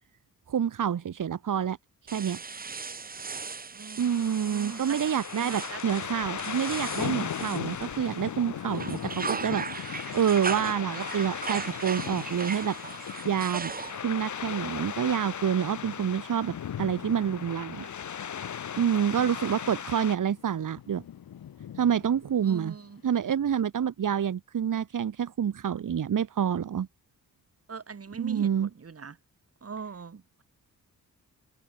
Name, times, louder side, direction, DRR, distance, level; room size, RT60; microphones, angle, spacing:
voice 1, 0.5-1.8 2.0-2.4 4.0-9.7 10.1-17.9 18.8-21.0 21.8-22.7 23.0-26.9 28.2-28.7, right 8 dB, 65° right, 2.1 m, -28 dB
sound 1, 2.1-8.3 8.6-14.2, right 5 dB, 25° right, 0.9 m, -38 dB
voice 2, 3.7-5.0 5.3-5.8 19.1-19.6 22.4-23.0 27.7-29.2 29.6-30.4, right 5 dB, 45° right, 6.3 m, -41 dB
sound 2, 4.0-20.2, left 8 dB, 55° left, 1.9 m, -39 dB
Thunder, 6.1-23.1, left 10 dB, 85° left, 2.1 m, -41 dB
wide cardioid pair, 130°, 34 cm